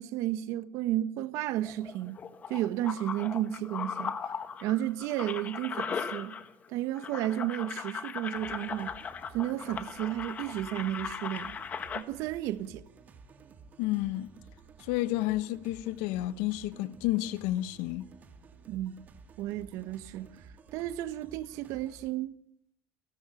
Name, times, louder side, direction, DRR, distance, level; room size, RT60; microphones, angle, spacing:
voice 1, 0.0-2.2 2.5-4.2 4.6-6.4 6.7-9.0 9.3-11.5 11.9-12.8 18.7-18.9 19.4-20.4 20.7-22.4, right 13 dB, 60° right, 1.3 m, -33 dB
sound 1, 1.6-6.7 7.0-12.0, left 6 dB, 25° left, 1.6 m, -38 dB
sound 2, 8.4-22.1, right 5 dB, 30° right, 2.2 m, -54 dB
voice 2, 13.8-14.3 14.8-18.1, left 16 dB, 75° left, 1.2 m, -31 dB
29.5 x 13.0 x 7.9 m
cardioid pair, 155°, 6 cm